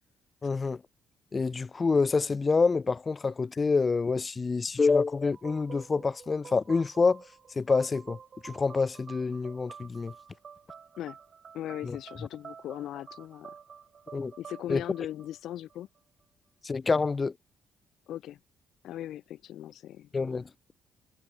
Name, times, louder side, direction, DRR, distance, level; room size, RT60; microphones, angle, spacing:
voice 1, 0.4-0.8 1.3-7.2 7.6-8.2 8.4-10.1 11.8-12.0 14.1-14.3 14.7-14.8 16.6-17.3 20.1-20.5, left 4 dB, 35° left, 0.5 m, -27 dB
sound 1, 5.3-16.0, right 6 dB, 50° right, 2.6 m, -49 dB
voice 2, 11.5-13.5 14.4-15.9 18.1-18.4 18.8-20.1, left 12 dB, 75° left, 2.3 m, -38 dB
supercardioid pair, 70°, 0 cm